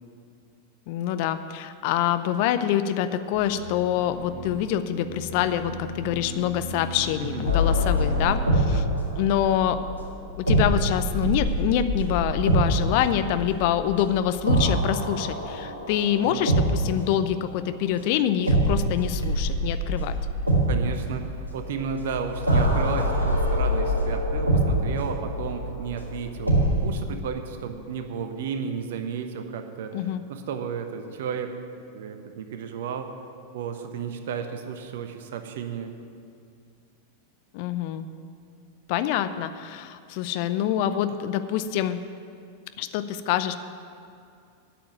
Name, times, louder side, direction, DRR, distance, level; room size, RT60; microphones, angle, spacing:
voice 1, 0.9-8.8 9.2-9.8 10.4-20.2 29.9-30.2 37.5-38.1 38.9-42.0 42.8-43.5, left 10 dB, 45° left, 11 dB, 0.6 m, -26 dB
sound 1, 3.3-8.4, left 1 dB, 10° left, 3.5 m, -36 dB
voice 2, 7.2-7.5 8.7-8.9 16.2-16.5 20.7-26.5 26.8-29.9 30.3-31.5 31.8-33.1 33.5-35.9, right 6 dB, 55° right, 7 dB, 1.0 m, -33 dB
sound 2, 7.5-17.2 18.5-26.9, right 1 dB, 80° right, 2.1 m, -25 dB
8.8 x 7.7 x 9.1 m, 2.4 s
figure-of-eight pair, 90°, 0 cm